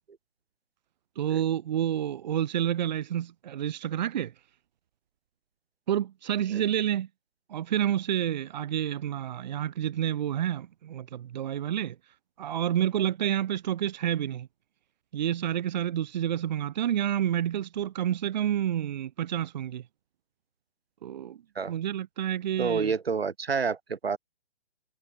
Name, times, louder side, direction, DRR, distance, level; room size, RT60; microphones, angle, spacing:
voice 1, 1.2-4.3 5.9-7.1 7.5-12.0 12.4-14.5 15.1-19.8 21.0-21.4 21.7-22.9, right 10 dB, 45° right, 1.1 m, -29 dB
voice 2, 22.6-24.2, right 5 dB, 80° right, 1.9 m, -28 dB
figure-of-eight pair, 135°, 30 cm